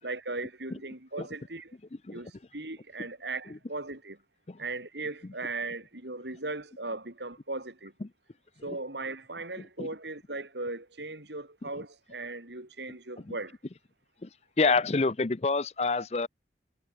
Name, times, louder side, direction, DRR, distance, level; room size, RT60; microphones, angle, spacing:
voice 1, 0.0-1.8 2.1-4.2 4.6-7.9 8.6-13.6, right 2 dB, 75° right, 4.8 m, -38 dB
voice 2, 14.6-16.3, left 4 dB, 35° left, 0.6 m, -27 dB
head